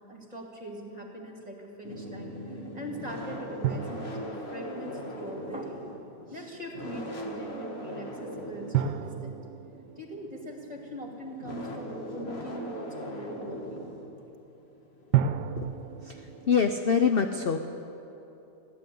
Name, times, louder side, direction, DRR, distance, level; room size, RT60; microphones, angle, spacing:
voice 1, 0.1-5.9 6.3-9.4 10.0-13.9, right 1 dB, 25° right, 1 dB, 2.3 m, -41 dB
sound 1, 1.8-16.8, equal, 40° left, 1.9 m, -40 dB
sound 2, 3.6-5.9 8.7-11.7 15.1-17.0, right 9 dB, 85° right, 1.3 m, -33 dB
voice 2, 16.0-17.6, left 6 dB, 60° left, 6 dB, 0.6 m, -25 dB
15.5 x 11.0 x 8.4 m, 3.0 s
omnidirectional pair, 1.8 m